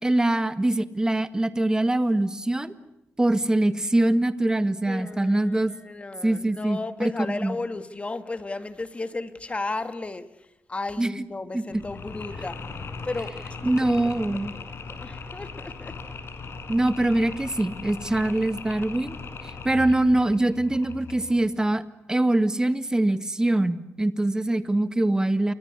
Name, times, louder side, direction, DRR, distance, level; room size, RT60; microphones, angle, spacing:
voice 1, 0.0-2.7 3.2-5.7 6.2-7.6 11.0-11.1 11.5-11.8 13.6-14.5 16.7-19.2 19.4-21.8 22.1-25.5, right 1 dB, 15° right, 11 dB, 1.7 m, -23 dB
voice 2, 4.9-16.1, left 3 dB, 25° left, 10 dB, 2.1 m, -35 dB
Mechanisms, 11.7-21.5, left 4 dB, 65° left, 5.2 m, -39 dB
29.0 x 24.5 x 8.3 m, 0.87 s
wide cardioid pair, 105°, 5 cm